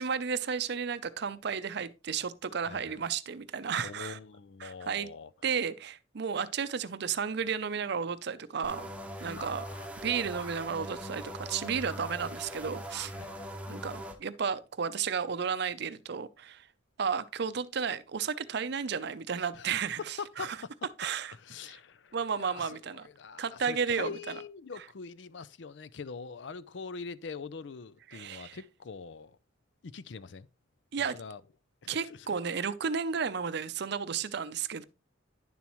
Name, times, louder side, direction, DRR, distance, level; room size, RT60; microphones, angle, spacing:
voice 1, 0.0-4.2 4.6-5.1 5.4-8.9 9.2-9.7 10.0-13.1 13.7-16.7 17.0-20.6 21.0-21.3 21.7-21.8 22.1-23.1 23.4-24.4 28.1-28.6 30.9-31.2 31.9-34.8, right 6 dB, 60° right, 0.5 m, -33 dB
voice 2, 3.8-5.3 9.4-9.9 13.1-13.5 19.5-19.7 20.2-20.7 21.3-29.4 29.8-30.5 31.1-31.4 31.8-32.3, left 5 dB, 65° left, 0.5 m, -43 dB
sound 1, 8.6-14.2, equal, 5° right, 0.9 m, -41 dB
10.5 x 7.1 x 3.0 m
head